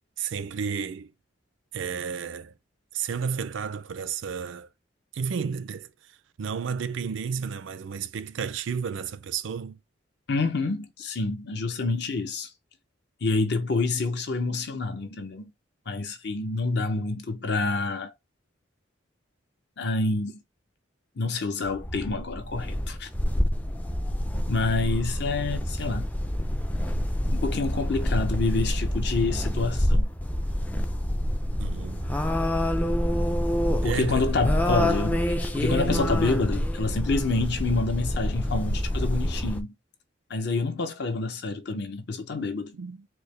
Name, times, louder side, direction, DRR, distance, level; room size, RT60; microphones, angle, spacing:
voice 1, 0.2-1.1 1.7-2.5 2.9-4.7 5.1-5.9 6.4-9.8 31.6-32.2 33.8-34.4 35.8-36.3 42.7-43.1, right 6 dB, 70° right, 0.4 m, -32 dB
voice 2, 10.3-12.5 13.2-15.4 15.9-18.1 19.8-20.4 21.2-23.1 24.5-26.1 27.3-30.1 33.8-39.7 40.3-42.7, left 3 dB, 55° left, 0.7 m, -28 dB
sound 1, 21.6-39.6, equal, 10° left, 0.3 m, -27 dB
4.5 x 2.1 x 3.2 m
head